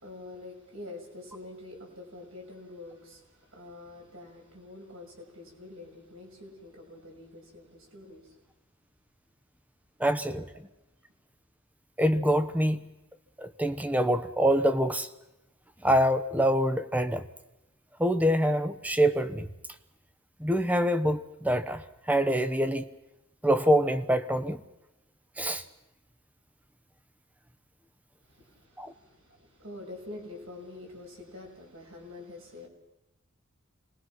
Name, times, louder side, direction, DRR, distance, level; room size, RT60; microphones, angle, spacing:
voice 1, 0.0-8.3 28.2-32.7, left 2 dB, 70° right, 0 dB, 6.6 m, -46 dB
voice 2, 10.0-10.5 12.0-12.9 13.4-15.1 15.8-17.3 18.0-19.5 20.4-22.8 23.4-24.6 25.4-25.6 28.8-28.9, equal, 5° right, 11 dB, 0.9 m, -25 dB
27.5 x 20.5 x 6.0 m, 0.95 s
head